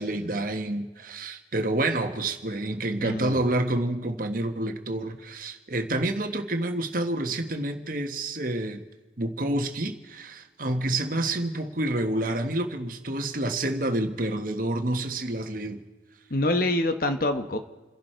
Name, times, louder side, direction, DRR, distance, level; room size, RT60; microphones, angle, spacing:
voice 1, 0.0-8.8 9.2-15.8, right 1 dB, 50° right, 6 dB, 1.4 m, -28 dB
voice 2, 3.0-3.4 16.3-17.6, left 2 dB, 50° left, 8 dB, 1.2 m, -25 dB
28.5 x 11.5 x 4.5 m, 1.3 s
head